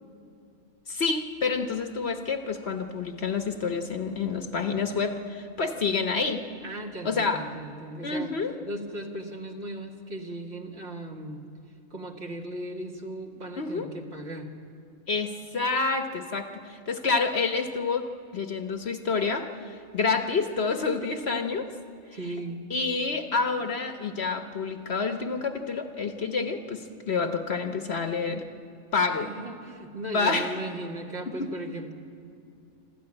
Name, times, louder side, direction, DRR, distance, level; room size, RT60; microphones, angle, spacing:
voice 1, 0.9-6.4 7.0-7.4 8.0-8.5 13.6-13.9 15.1-21.7 22.7-28.4 28.9-29.3 30.1-30.5 31.3-31.5, left 4 dB, 50° left, 7 dB, 1.2 m, -28 dB
voice 2, 6.6-8.3 8.7-11.4 11.9-14.5 22.1-22.6 29.1-31.9, right 1 dB, 50° right, 2 dB, 2.0 m, -37 dB
26.0 x 13.5 x 9.9 m, 2.6 s
omnidirectional pair, 1.5 m